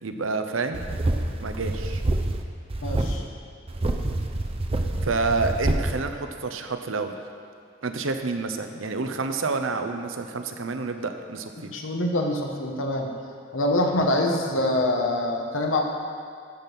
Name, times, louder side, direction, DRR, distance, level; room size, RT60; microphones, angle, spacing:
voice 1, 0.0-0.9 1.4-2.0 5.0-7.1 7.8-11.7, right 3 dB, 75° right, 7 dB, 0.8 m, -28 dB
sound 1, 0.7-2.4 2.7-3.2 3.7-5.9, right 2 dB, 30° right, 0.6 m, -27 dB
voice 2, 2.8-3.2 11.7-13.1 13.5-15.8, left 1 dB, 80° left, 1 dB, 1.1 m, -25 dB
12.5 x 5.4 x 6.0 m, 2.2 s
head